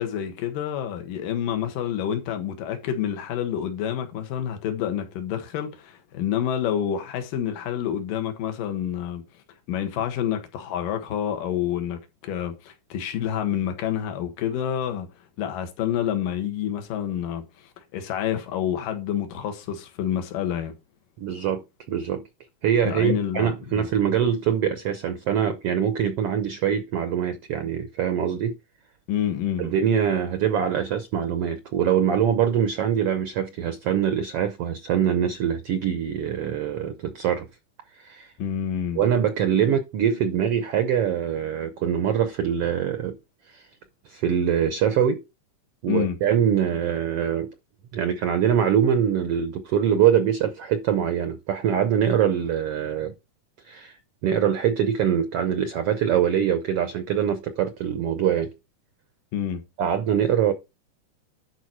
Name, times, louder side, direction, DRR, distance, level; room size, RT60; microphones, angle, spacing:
voice 1, 0.0-9.2 9.7-15.1 15.4-20.7 22.8-23.9 29.1-29.7 38.4-39.0 45.9-46.2 59.3-59.6, left 9 dB, 80° left, 3.0 m, -28 dB
voice 2, 21.2-22.2 22.6-28.5 29.6-37.5 38.0-38.3 38.9-43.2 43.5-43.6 44.0-45.2 45.8-47.5 47.9-53.1 53.6-58.5 59.8-60.5, right 9 dB, 75° right, 1.4 m, -23 dB
11.5 x 4.6 x 4.5 m
omnidirectional pair, 3.8 m